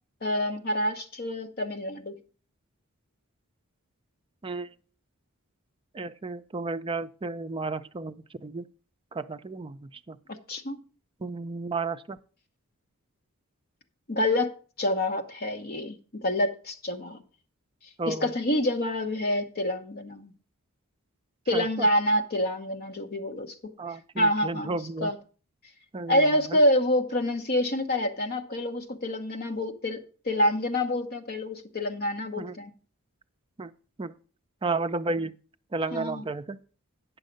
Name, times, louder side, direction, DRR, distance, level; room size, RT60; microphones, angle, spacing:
voice 1, 0.2-2.2 10.5-10.8 14.1-14.5 14.8-17.2 18.1-20.3 21.5-23.5 24.2-25.2 26.1-30.0 30.2-32.7 35.9-36.2, left 1 dB, 45° left, 1.0 m, -27 dB
voice 2, 5.9-8.7 9.1-10.2 11.2-12.2 18.0-18.3 21.5-21.9 23.8-25.1 25.9-26.6 32.4-32.6 33.6-33.7 34.0-34.1 34.6-35.3 35.7-36.6, right 3 dB, 25° right, 0.4 m, -33 dB
8.9 x 6.3 x 5.2 m
head